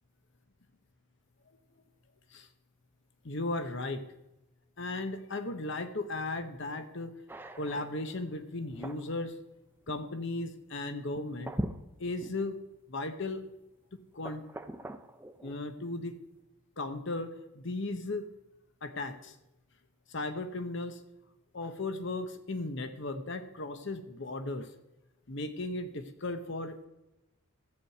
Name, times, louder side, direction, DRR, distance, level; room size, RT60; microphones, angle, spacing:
voice 1, 3.2-4.0 4.8-7.1 7.6-9.4 9.9-11.5 12.0-12.6 12.9-13.4 14.1-14.4 15.4-16.1 16.8-18.3 18.8-19.4 20.1-21.0 21.5-24.7 25.3-26.8, left 2 dB, 55° left, 9 dB, 0.9 m, -36 dB
sound 1, 7.3-8.2 8.7-9.1 9.9-10.0 11.1-12.4 13.0-13.1 14.2-15.6, right 1 dB, 10° right, 0.4 m, -41 dB
14.0 x 4.9 x 7.8 m, 0.95 s
head